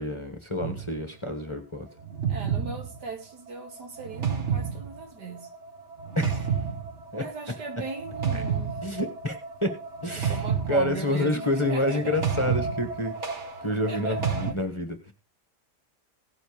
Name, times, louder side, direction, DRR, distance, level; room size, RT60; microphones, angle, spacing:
voice 1, 0.0-1.9 6.1-6.5 7.1-7.6 8.3-8.4 8.8-15.1, left 1 dB, 20° left, 1.2 m, -29 dB
sound 1, 0.6-1.0 2.0-14.5, right 6 dB, 45° right, 1.4 m, -31 dB
voice 2, 2.3-5.5 7.1-8.8 10.2-12.2 13.9-14.4, right 4 dB, 70° right, 2.3 m, -38 dB
17.0 x 7.3 x 3.5 m
omnidirectional pair, 1.9 m